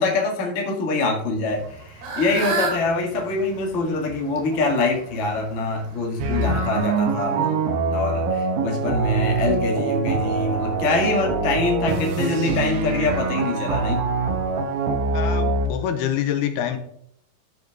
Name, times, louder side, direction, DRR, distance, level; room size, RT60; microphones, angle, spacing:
voice 1, 0.0-14.0, left 3 dB, 35° left, 1 dB, 1.2 m, -24 dB
Fowl / Bird, 1.5-6.8, right 5 dB, 90° right, 4.4 m, -33 dB
sound 1, 6.2-15.7, right 3 dB, 70° right, 2.9 m, -24 dB
voice 2, 15.1-16.8, left 10 dB, 80° left, 8 dB, 2.9 m, -26 dB
13.0 x 6.5 x 3.5 m, 0.69 s
omnidirectional pair, 4.6 m